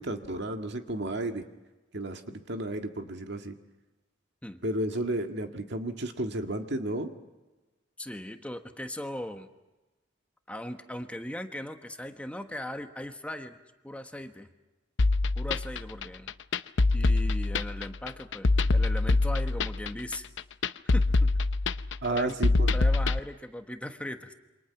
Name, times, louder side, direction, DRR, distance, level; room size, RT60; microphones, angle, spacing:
voice 1, 0.0-1.4 1.9-3.6 4.6-7.1 22.0-22.7, right 1 dB, 65° right, 5 dB, 1.9 m, -32 dB
voice 2, 8.0-9.5 10.5-13.6 13.8-14.5 15.4-16.3 16.9-20.3 20.9-21.3 22.1-22.3 22.7-24.3, left 1 dB, 5° left, 6 dB, 1.2 m, -38 dB
sound 1, 15.0-23.2, left 3 dB, 70° left, 0.7 m, -25 dB
28.5 x 25.0 x 5.9 m, 1.1 s
head